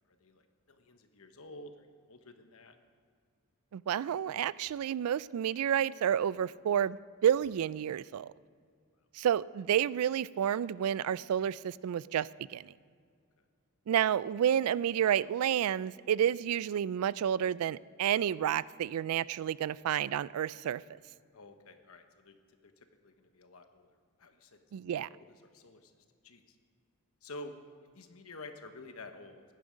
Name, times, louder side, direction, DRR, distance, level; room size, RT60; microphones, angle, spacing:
voice 1, 0.2-2.8 21.3-22.4 22.6-23.9 24.2-24.7 25.1-25.9 26.2-26.6 27.2-27.5 27.9-29.4, left 2 dB, 70° left, 7 dB, 1.1 m, -50 dB
voice 2, 3.7-8.3 9.1-12.7 13.9-20.8 24.7-25.1, right 9 dB, 80° right, 20 dB, 0.3 m, -30 dB
15.5 x 10.5 x 5.1 m, 2.1 s
head